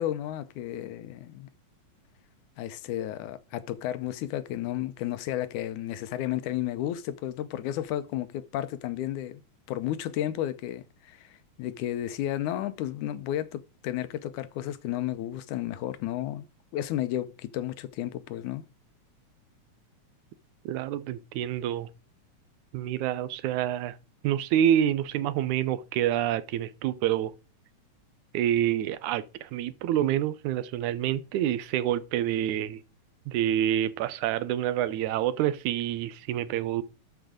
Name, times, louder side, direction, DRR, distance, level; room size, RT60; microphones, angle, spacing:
voice 1, 0.0-1.5 2.6-9.4 9.7-16.4 16.7-18.6, left 12 dB, 90° left, 2.3 m, -32 dB
voice 2, 20.7-21.9 22.7-24.0 24.2-27.3 28.3-32.8 33.3-36.8, right 11 dB, 80° right, 2.1 m, -27 dB
12.0 x 4.6 x 5.0 m
omnidirectional pair, 3.4 m